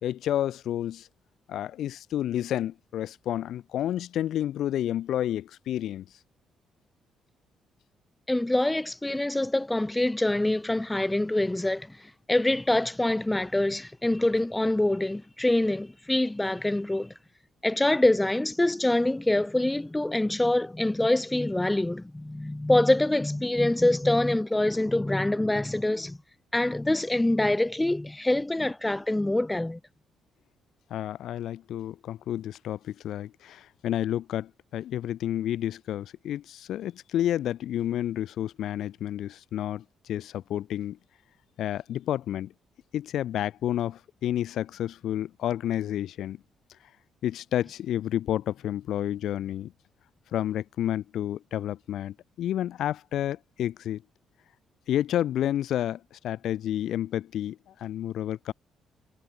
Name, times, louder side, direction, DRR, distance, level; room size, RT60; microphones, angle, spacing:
voice 1, 0.0-1.1 1.5-6.1 30.9-41.0 41.6-42.5 42.9-46.4 47.2-49.7 50.3-54.0 54.9-58.5, left 11 dB, 75° left, 4.9 m, -30 dB
voice 2, 8.3-11.9 12.3-17.1 17.6-26.2 26.5-29.8, left 1 dB, 10° left, 2.2 m, -25 dB
cardioid pair, 90°, 0 cm